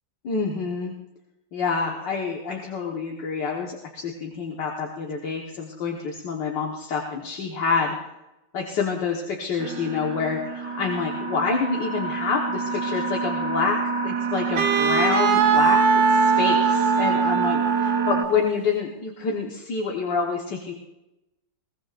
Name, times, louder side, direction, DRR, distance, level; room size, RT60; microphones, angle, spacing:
voice 1, 0.2-0.9 1.5-8.0 8.5-13.8 14.0-15.8 16.1-20.7, left 5 dB, 70° left, -1 dB, 2.0 m, -27 dB
sound 1, 9.6-18.2, right 5 dB, 50° right, 1.0 m, -27 dB
Wind instrument woodwind instrument, 14.6-18.6, right 5 dB, 75° right, 1.6 m, -21 dB
22.0 x 17.0 x 2.5 m, 0.95 s
omnidirectional pair, 2.0 m